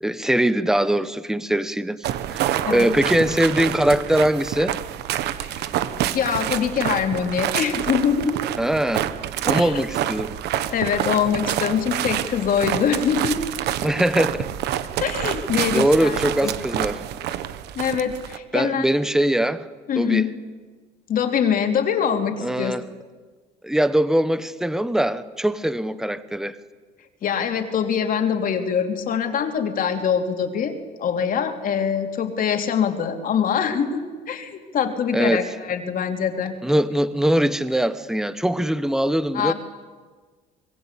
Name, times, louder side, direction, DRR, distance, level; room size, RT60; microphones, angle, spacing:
voice 1, 0.0-4.8 8.6-9.1 9.4-10.3 13.8-14.5 15.7-17.0 18.5-19.7 20.0-20.3 22.4-22.8 23.6-26.5 35.1-35.5 36.6-39.5, right 1 dB, 5° right, 14 dB, 1.1 m, -22 dB
sound 1, 2.0-18.4, right 12 dB, 80° right, 1.3 m, -27 dB
voice 2, 6.1-8.4 9.5-9.7 10.7-13.4 15.0-16.5 17.7-18.9 19.9-20.3 21.1-22.7 27.2-30.7 31.0-36.5 39.3-39.5, left 7 dB, 55° left, 5 dB, 3.3 m, -23 dB
26.0 x 21.5 x 8.5 m, 1.4 s
cardioid pair, 110°, 17 cm